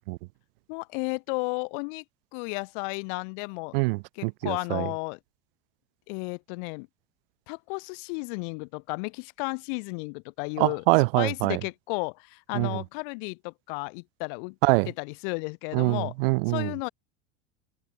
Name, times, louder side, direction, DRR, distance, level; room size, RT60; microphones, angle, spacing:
voice 1, 0.7-2.0 2.3-3.7 4.1-5.2 6.1-6.9 7.5-10.8 11.2-14.5 14.8-16.1 16.5-16.9, left 37 dB, 50° left, 5.0 m, -33 dB
voice 2, 3.7-4.9 10.6-11.6 12.5-12.7 14.6-14.9 15.7-16.7, right 26 dB, 55° right, 2.0 m, -24 dB
supercardioid pair, 180°, 33 cm